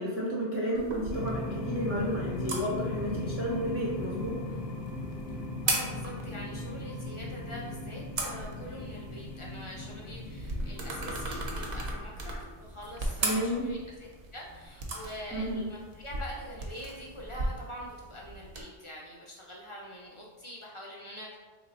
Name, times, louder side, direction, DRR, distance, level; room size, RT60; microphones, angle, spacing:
voice 1, 0.0-4.4 13.2-13.7 15.3-15.6, equal, 20° right, -7 dB, 0.4 m, -32 dB
sound 1, 0.7-18.6, right 2 dB, 85° right, 1.0 m, -39 dB
sound 2, 0.8-20.4, right 1 dB, 60° right, 0.7 m, -45 dB
sound 3, 1.1-12.0, left 2 dB, 65° left, 0.8 m, -38 dB
voice 2, 5.6-21.4, equal, 45° left, -3 dB, 0.4 m, -44 dB
3.1 x 2.2 x 3.9 m, 1.3 s
omnidirectional pair, 1.1 m